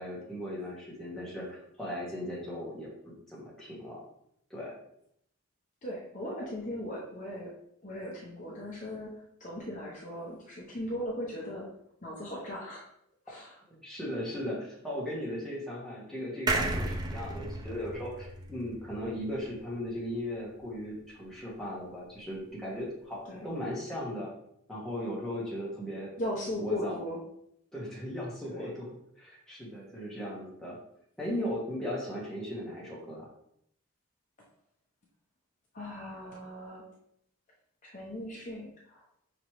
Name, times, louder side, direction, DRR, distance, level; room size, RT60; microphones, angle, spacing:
voice 1, 0.0-2.9 3.3-4.0 4.5-4.7 13.7-24.3 24.7-26.1 26.6-27.0 27.7-28.9 29.2-30.8 31.2-33.3, equal, ahead, -6 dB, 1.1 m, -37 dB
voice 2, 5.8-7.5 7.8-11.7 12.0-12.9 13.3-13.6 23.2-23.5 26.2-27.2 28.5-28.7 35.7-36.8 37.8-39.0, left 1 dB, 35° left, -3 dB, 0.7 m, -38 dB
sound 1, 16.5-19.9 20.3-20.4 20.6-20.7, right 2 dB, 20° right, 0.4 m, -34 dB
5.1 x 3.0 x 3.0 m, 0.73 s
head